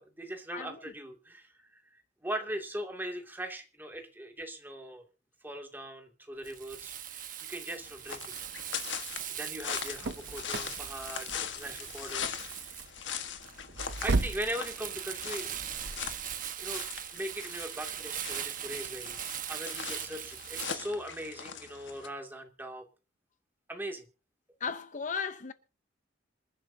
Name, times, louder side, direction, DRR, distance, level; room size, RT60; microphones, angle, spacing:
voice 1, 0.0-5.0 5.4-7.2 7.5-8.3 8.9-9.0 9.3-12.8 14.0-15.6 16.6-16.8 17.1-19.2 19.5-22.9 23.7-24.0, right 1 dB, 10° right, 2.5 m, -40 dB
voice 2, 0.5-0.8 24.6-25.5, left 6 dB, 45° left, 0.8 m, -35 dB
Crumpling crinkling, 6.4-20.8, right 10 dB, 45° right, 1.3 m, -40 dB
sound 1, 7.8-22.1, left 7 dB, 70° left, 1.5 m, -41 dB
sound 2, 9.6-14.5, right 3 dB, 60° right, 0.6 m, -35 dB
27.0 x 11.0 x 2.8 m
head